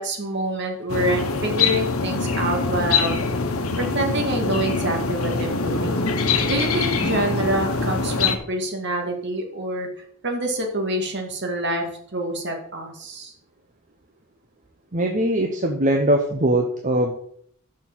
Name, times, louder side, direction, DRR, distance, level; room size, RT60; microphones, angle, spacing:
voice 1, 0.0-3.2 3.8-6.0 6.4-9.9 10.2-11.9 12.1-13.3, right 1 dB, 50° right, 2 dB, 2.3 m, -26 dB
sound 1, 0.9-8.4, left 4 dB, 75° left, 1.2 m, -23 dB
voice 2, 14.9-17.1, right 1 dB, 35° right, 2 dB, 0.9 m, -21 dB
6.8 x 6.4 x 7.4 m, 0.64 s
head